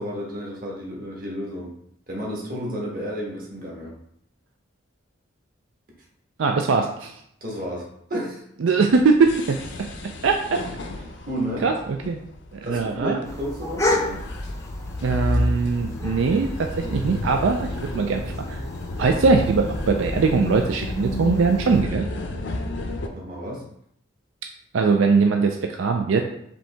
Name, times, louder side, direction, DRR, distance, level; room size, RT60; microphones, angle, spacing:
voice 1, 0.0-1.7 2.1-3.9 7.4-8.4 11.3-11.6 12.6-14.2 16.5-17.2 23.1-23.6, equal, 45° right, -3 dB, 1.3 m, -32 dB
voice 2, 6.4-7.1 8.6-9.6 10.2-10.6 11.6-11.7 12.1-12.2 12.5-13.2 15.0-18.2 18.5-18.6 19.0-22.1 24.7-26.2, right 4 dB, 90° right, 4 dB, 0.4 m, -21 dB
sound 1, 8.9-23.1, left 1 dB, 65° left, 0.5 m, -31 dB
sound 2, 13.2-21.8, left 1 dB, 15° left, 0.5 m, -33 dB
5.2 x 2.8 x 3.4 m, 0.70 s
head